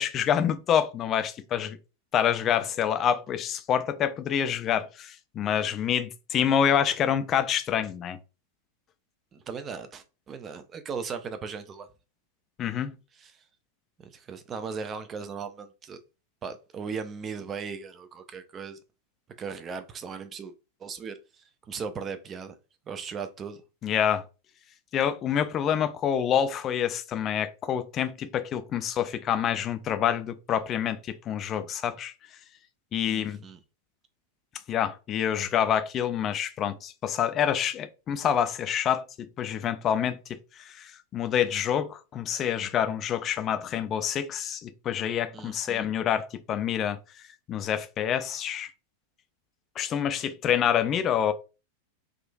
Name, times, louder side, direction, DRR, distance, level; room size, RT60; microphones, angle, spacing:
voice 1, 0.0-1.8 2.1-8.2 12.6-12.9 23.8-24.2 24.9-32.1 32.9-33.4 34.7-40.4 40.8-47.0 47.5-48.7 49.8-51.3, left 9 dB, 30° left, 0.4 m, -27 dB
voice 2, 9.3-11.9 13.1-13.4 14.0-16.0 16.4-18.8 19.4-20.5 20.8-22.5 22.9-23.6 33.1-33.6 45.3-45.9, right 5 dB, 25° right, 0.5 m, -38 dB
3.6 x 2.4 x 2.3 m
figure-of-eight pair, 90°, 0 cm